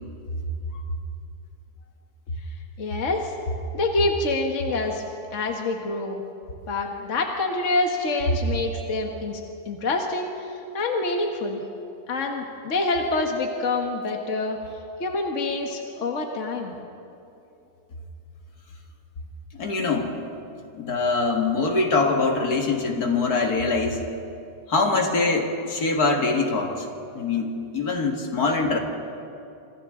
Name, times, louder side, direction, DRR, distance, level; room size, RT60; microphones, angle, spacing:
voice 1, 2.8-3.3 3.7-5.0 5.3-6.2 6.7-9.4 9.7-11.6 12.1-14.6 15.0-16.7, left 2 dB, 50° left, 2 dB, 1.7 m, -26 dB
voice 2, 19.6-20.2 20.7-24.0 24.7-26.9 27.1-28.8, left 3 dB, 70° left, 2 dB, 2.4 m, -23 dB
27.0 x 26.0 x 3.8 m, 2.7 s
omnidirectional pair, 1.7 m